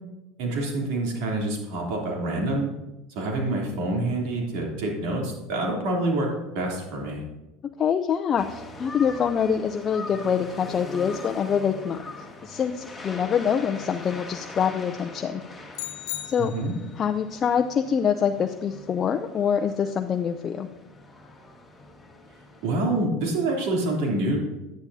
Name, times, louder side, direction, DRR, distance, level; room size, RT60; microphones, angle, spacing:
voice 1, 0.4-2.7 3.1-6.3 6.5-7.2 16.4-16.7 22.6-24.4, right 2 dB, 70° right, -1 dB, 3.2 m, -27 dB
voice 2, 7.8-12.0 12.4-15.4 16.2-16.5 17.0-20.7, left 7 dB, 35° left, 6 dB, 0.5 m, -25 dB
sound 1, 8.4-22.8, left 2 dB, 15° left, 1.8 m, -42 dB
sound 2, 15.7-17.1, left 14 dB, 75° left, 0.9 m, -36 dB
10.5 x 10.0 x 2.8 m, 1.0 s
supercardioid pair, 100°, 0 cm